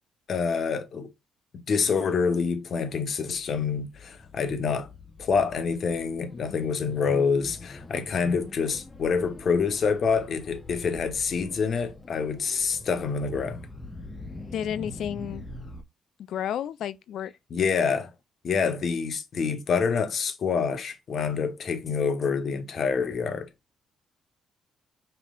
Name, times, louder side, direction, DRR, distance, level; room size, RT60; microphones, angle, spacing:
voice 1, 0.3-1.1 1.5-4.9 5.2-13.6 17.5-18.1 18.4-23.5, left 5 dB, 55° left, 0.8 m, -27 dB
sound 1, 2.9-15.8, left 2 dB, 25° left, 0.7 m, -43 dB
voice 2, 14.5-15.5 16.3-17.3, left 10 dB, 75° left, 0.3 m, -31 dB
5.4 x 2.8 x 2.3 m
supercardioid pair, 70°, 0 cm